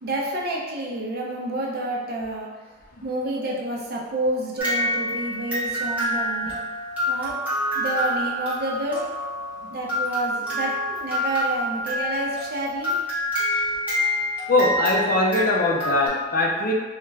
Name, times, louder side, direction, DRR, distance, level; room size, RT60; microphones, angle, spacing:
voice 1, 0.0-2.5 3.0-6.5 7.1-7.4 7.7-9.0 9.7-12.9, right 1 dB, 55° right, -3 dB, 0.6 m, -29 dB
sound 1, 4.6-16.1, equal, 10° right, 1.1 m, -27 dB
voice 2, 14.5-16.7, left 2 dB, 50° left, -1 dB, 0.5 m, -21 dB
3.2 x 2.4 x 3.3 m, 1.4 s
head